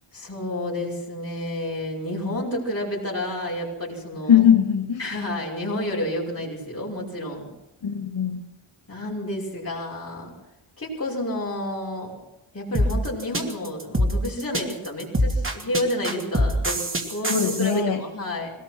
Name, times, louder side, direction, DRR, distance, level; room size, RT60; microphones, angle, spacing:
voice 1, 0.1-4.4 5.0-7.5 8.9-10.3 10.8-12.1 12.5-18.5, left 1 dB, 30° left, -5 dB, 5.9 m, -30 dB
voice 2, 4.3-5.0 7.8-8.4 17.3-18.0, left 8 dB, 65° left, -1 dB, 2.3 m, -20 dB
sound 1, 12.7-17.8, equal, 25° right, 2.6 m, -24 dB
24.0 x 18.5 x 6.1 m, 0.98 s
wide cardioid pair, 135°, 49 cm